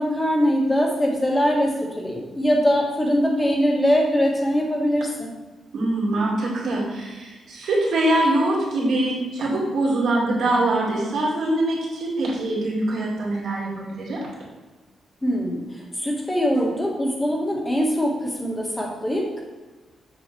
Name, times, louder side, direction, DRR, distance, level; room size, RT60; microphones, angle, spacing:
voice 1, 0.0-5.3 15.2-19.4, equal, 15° left, -2 dB, 1.9 m, -22 dB
voice 2, 5.7-14.3 16.5-16.6, right 1 dB, 75° right, -5 dB, 2.7 m, -23 dB
7.6 x 6.9 x 3.5 m, 1.2 s
cardioid pair, 120°, 0 cm